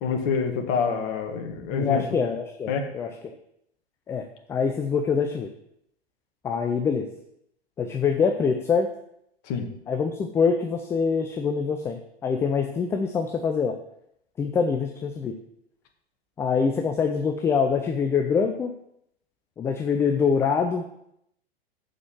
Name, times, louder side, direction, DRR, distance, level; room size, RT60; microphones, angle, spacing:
voice 1, 0.0-2.0 2.7-2.8 9.5-9.7, left 6 dB, 35° left, 4 dB, 1.7 m, -26 dB
voice 2, 1.7-3.3 4.1-5.5 6.4-7.1 7.8-8.9 9.9-13.8 14.4-15.3 16.4-18.7 19.6-20.8, left 5 dB, 10° left, 5 dB, 0.4 m, -25 dB
7.2 x 6.2 x 7.4 m, 0.75 s
figure-of-eight pair, 105°, 32 cm